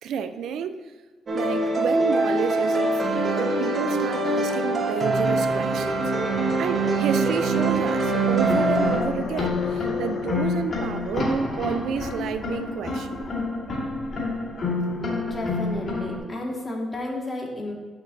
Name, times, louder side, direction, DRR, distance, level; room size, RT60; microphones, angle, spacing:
voice 1, 0.0-0.8 1.3-6.1 6.6-13.3, right 7 dB, 75° right, 10 dB, 0.4 m, -30 dB
sound 1, 1.3-9.0, right 3 dB, 40° right, 1.1 m, -23 dB
sound 2, 5.6-10.9, left 5 dB, 70° left, 0.6 m, -37 dB
sound 3, 8.3-16.2, left 3 dB, 45° left, 1.9 m, -28 dB
voice 2, 15.1-17.7, left 1 dB, 25° left, -1 dB, 1.8 m, -32 dB
8.9 x 6.6 x 2.7 m, 1.3 s
cardioid pair, 90°, 0 cm